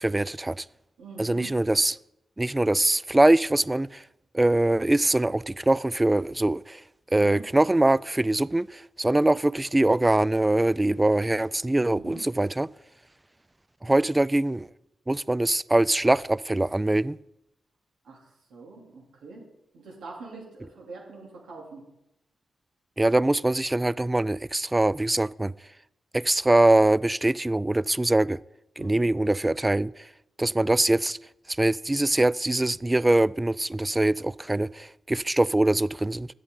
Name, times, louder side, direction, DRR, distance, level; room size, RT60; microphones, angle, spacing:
voice 1, 0.0-0.6 1.2-2.0 2.4-4.0 4.3-6.8 7.1-12.7 13.8-14.7 15.1-17.2 23.0-25.5 26.1-28.4 28.8-30.0 30.4-31.2 31.5-36.3, right 1 dB, 20° right, 0.3 m, -23 dB
voice 2, 1.0-1.5 7.1-7.4 11.9-12.2 18.0-19.4 19.7-21.8 28.8-29.1, right 3 dB, 85° right, 3.0 m, -43 dB
11.0 x 8.2 x 3.9 m
supercardioid pair, 50°, 0 cm